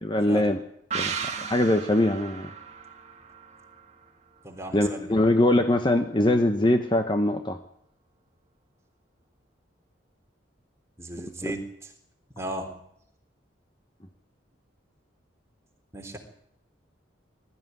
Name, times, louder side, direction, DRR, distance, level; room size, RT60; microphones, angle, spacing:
voice 1, 0.0-0.6 0.9-1.1 1.4-2.5 4.7-7.6 11.4-11.5, left 1 dB, 25° left, 6 dB, 1.1 m, -22 dB
sound 1, 0.9-4.4 4.7-4.8, right 6 dB, 35° right, 2.0 m, -36 dB
voice 2, 4.4-5.2 11.0-11.9 12.3-12.7 15.9-16.2, right 1 dB, 15° right, 2 dB, 3.5 m, -36 dB
21.0 x 14.0 x 9.4 m, 0.74 s
head